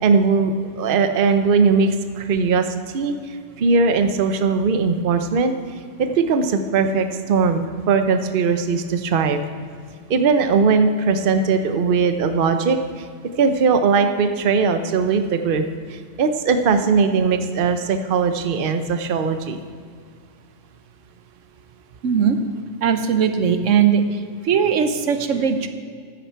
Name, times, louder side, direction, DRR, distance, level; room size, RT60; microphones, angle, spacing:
voice 1, 0.0-2.7 2.9-3.2 3.6-5.5 6.0-9.4 10.1-13.1 13.4-15.6 15.9-19.6, right 5 dB, 50° right, 8 dB, 0.9 m, -19 dB
voice 2, 22.0-22.4 22.8-24.0 24.4-25.7, right 7 dB, 85° right, 8 dB, 1.1 m, -19 dB
14.5 x 10.0 x 4.6 m, 2.1 s
omnidirectional pair, 1.3 m